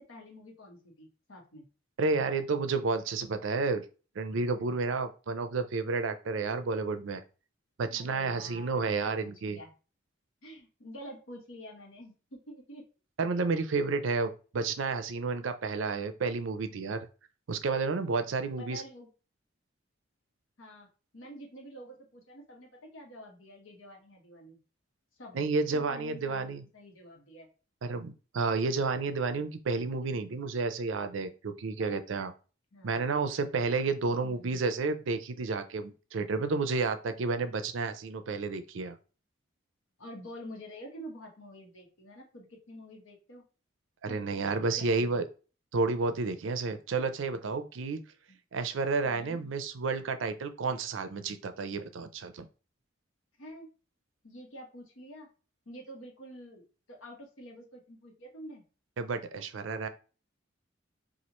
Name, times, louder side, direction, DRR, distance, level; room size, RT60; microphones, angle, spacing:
voice 1, 0.1-1.6 7.9-9.7 10.4-12.8 13.7-13.8 18.2-19.1 20.6-20.9 21.1-24.6 25.2-27.5 32.7-33.4 34.0-34.6 40.0-43.4 44.1-44.2 44.8-45.1 48.3-48.4 49.0-49.4 53.4-53.7 54.2-55.3 55.7-56.6 56.9-58.6, equal, 85° left, 1 dB, 1.2 m, -48 dB
voice 2, 2.0-3.8 4.2-7.2 7.8-9.6 13.2-17.1 17.5-18.8 25.3-26.6 27.8-32.3 32.8-39.0 44.0-45.2 45.7-48.0 48.5-52.5 59.0-59.9, right 4 dB, 75° right, 10 dB, 0.4 m, -31 dB
4.3 x 2.4 x 2.9 m, 0.35 s
head